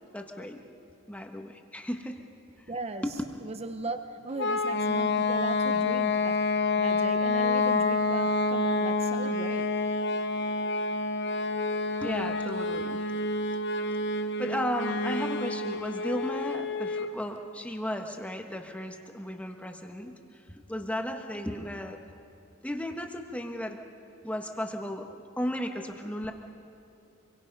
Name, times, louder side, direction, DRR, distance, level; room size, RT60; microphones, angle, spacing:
voice 1, 0.1-0.8 1.1-2.2 2.6-2.7 3.0-3.1 12.0-13.1 14.4-22.0 22.6-23.8 24.2-25.1 25.4-26.3, equal, 5° left, 3 dB, 1.3 m, -35 dB
voice 2, 2.7-3.0 3.4-6.4 6.8-9.7, right 2 dB, 30° right, 7 dB, 0.7 m, -38 dB
sound 1, 4.4-17.2, left 3 dB, 55° left, 0.8 m, -28 dB
27.0 x 23.0 x 5.5 m, 3.0 s
head